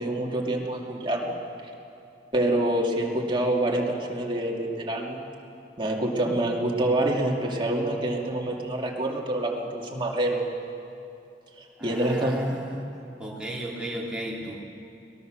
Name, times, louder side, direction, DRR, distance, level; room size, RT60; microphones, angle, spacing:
voice 1, 0.0-1.4 2.3-5.2 5.8-10.4 11.6-12.6, right 1 dB, 25° right, -1 dB, 2.5 m, -26 dB
voice 2, 11.8-12.9 13.2-14.6, equal, 5° right, -4 dB, 3.2 m, -34 dB
22.5 x 19.5 x 6.6 m, 2.7 s
head